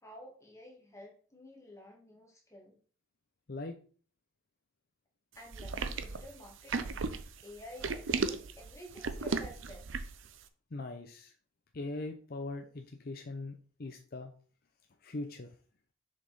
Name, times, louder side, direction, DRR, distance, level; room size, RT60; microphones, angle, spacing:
voice 1, 0.0-2.8 5.4-7.1 7.4-9.9, left 1 dB, 15° left, -1 dB, 1.9 m, -51 dB
sound 1, 5.5-10.3, right 4 dB, 65° right, 0.6 m, -35 dB
voice 2, 10.7-11.3 11.7-14.3 15.0-15.5, left 2 dB, 45° left, 5 dB, 0.6 m, -41 dB
6.5 x 5.3 x 4.1 m, 0.42 s
head